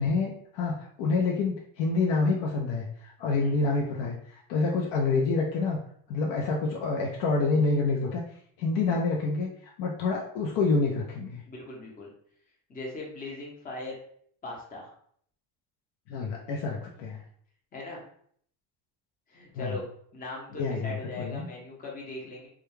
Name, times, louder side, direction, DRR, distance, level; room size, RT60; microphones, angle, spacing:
voice 1, 0.0-5.8 6.1-8.2 8.6-9.5 9.8-11.4 16.1-17.2 19.5-19.8 20.5-21.5, left 3 dB, 65° left, -1 dB, 0.6 m, -27 dB
voice 2, 11.5-12.1 12.7-14.0 14.4-14.9 17.7-18.0 19.3-19.8 20.1-22.5, left 2 dB, 20° left, -2 dB, 0.7 m, -39 dB
2.3 x 2.3 x 3.0 m, 0.62 s
cardioid pair, 120°, 47 cm